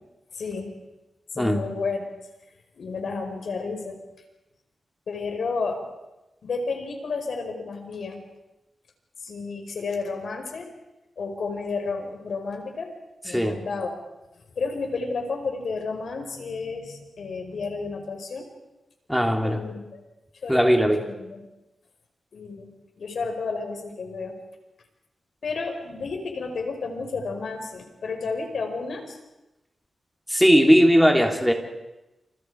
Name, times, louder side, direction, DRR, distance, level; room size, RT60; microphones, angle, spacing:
voice 1, 0.3-0.7 1.3-2.1 2.8-4.0 5.1-5.8 6.4-8.2 9.2-10.7 11.2-12.9 13.2-13.9 14.5-18.5 19.4-20.0 20.4-21.4 22.3-22.7 23.0-24.4 25.4-29.2, left 4 dB, 75° left, 4 dB, 5.1 m, -31 dB
voice 2, 13.3-13.6 19.1-19.6 20.5-21.0 30.3-31.5, equal, ahead, 3 dB, 3.6 m, -18 dB
29.0 x 28.5 x 5.0 m, 0.99 s
cardioid pair, 85°, 0 cm